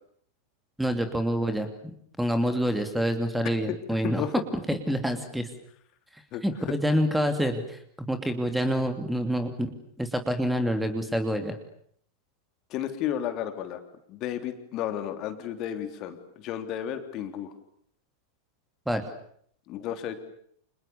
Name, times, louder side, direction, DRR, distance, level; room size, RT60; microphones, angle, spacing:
voice 1, 0.8-4.2 4.7-5.5 6.1-7.8 8.1-9.7 10.0-11.5 18.9-19.0, equal, 5° right, 7 dB, 2.9 m, -27 dB
voice 2, 12.7-13.8 14.1-17.5 19.7-20.1, left 10 dB, 40° left, 7 dB, 3.3 m, -33 dB
30.0 x 28.0 x 7.0 m, 0.66 s
figure-of-eight pair, 90°, 0 cm